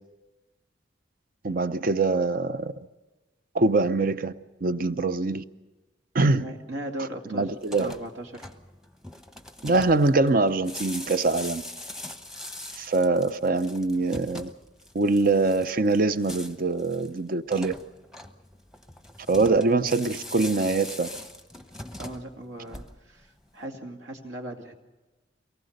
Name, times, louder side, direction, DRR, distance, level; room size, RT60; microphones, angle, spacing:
voice 1, 1.4-2.7 3.5-4.3 4.6-5.4 6.1-6.5 7.3-7.9 9.6-11.6 12.8-14.5 14.9-17.7 19.3-21.1, right 3 dB, 50° right, 0.7 m, -23 dB
voice 2, 6.3-7.5 7.8-8.5 22.0-24.7, right 1 dB, 70° right, 2.5 m, -38 dB
sound 1, 7.5-23.2, left 1 dB, 5° right, 1.0 m, -42 dB
23.5 x 19.5 x 6.6 m
head